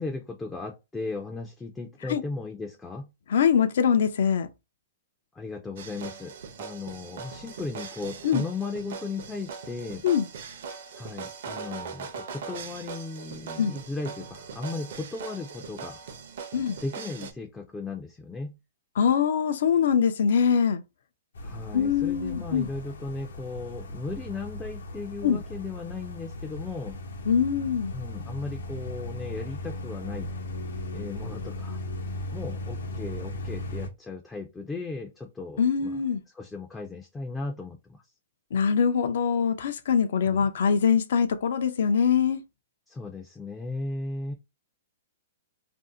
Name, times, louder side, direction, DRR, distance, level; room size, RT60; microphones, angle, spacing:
voice 1, 0.0-3.1 5.4-10.0 11.0-16.0 16.8-18.6 21.4-27.0 27.9-30.3 30.9-31.8 32.3-36.0 36.3-38.0 40.3-40.5 42.9-44.3, left 3 dB, 10° left, 0.4 m, -36 dB
voice 2, 3.3-4.5 8.2-8.4 10.0-10.3 13.6-13.7 16.5-16.8 19.0-20.8 21.7-22.7 25.2-25.4 27.3-27.9 35.6-36.2 38.5-42.4, left 7 dB, 65° left, 0.4 m, -23 dB
sound 1, 5.8-17.3, right 6 dB, 60° right, 0.6 m, -40 dB
sound 2, 21.4-33.9, left 1 dB, 80° left, 0.8 m, -37 dB
2.6 x 2.0 x 3.7 m
hypercardioid pair, 160°, 0 cm